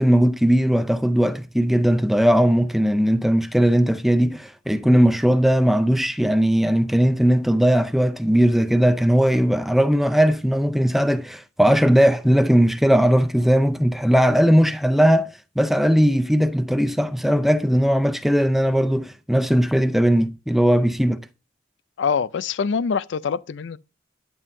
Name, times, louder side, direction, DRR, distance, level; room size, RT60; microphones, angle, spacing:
voice 1, 0.0-15.3 15.6-21.2, equal, ahead, 0.4 m, -18 dB
voice 2, 22.0-23.8, left 6 dB, 75° left, 0.4 m, -24 dB
11.0 x 5.6 x 2.6 m
head